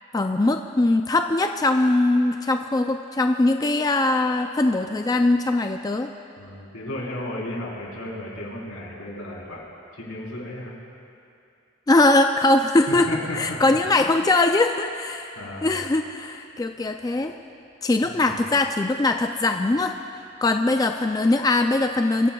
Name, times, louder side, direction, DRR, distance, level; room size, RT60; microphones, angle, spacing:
voice 1, 0.1-6.1 11.9-13.1 13.3-15.3 15.6-17.3 17.8-20.0 20.4-22.3, left 2 dB, 20° left, 5 dB, 0.3 m, -21 dB
voice 2, 6.4-9.6 9.9-10.7 12.9-14.1 15.3-15.7 18.0-18.4, left 1 dB, 85° left, -4 dB, 4.0 m, -34 dB
24.5 x 15.5 x 2.3 m, 2.6 s
head